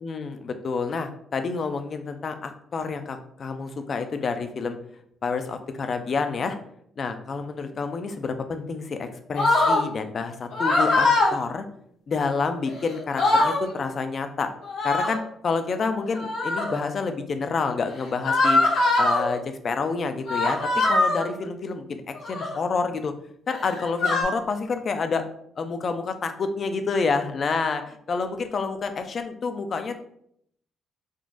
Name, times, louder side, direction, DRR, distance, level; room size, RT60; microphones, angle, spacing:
voice 1, 0.0-4.8 5.2-6.6 7.0-11.6 12.1-14.5 14.8-18.6 19.0-20.6 20.9-23.1 23.5-25.3 25.6-30.0, left 4 dB, 50° left, 8 dB, 0.4 m, -28 dB
sound 1, 9.4-9.8 10.5-11.3 12.6-12.7 13.0-13.6 14.7-15.2 16.1-16.8 18.2-19.2 20.3-21.3 22.1-22.5 23.5-24.2, left 2 dB, 80° left, 0.9 m, -22 dB
3.7 x 2.3 x 2.5 m, 0.69 s
cardioid pair, 90°, 0 cm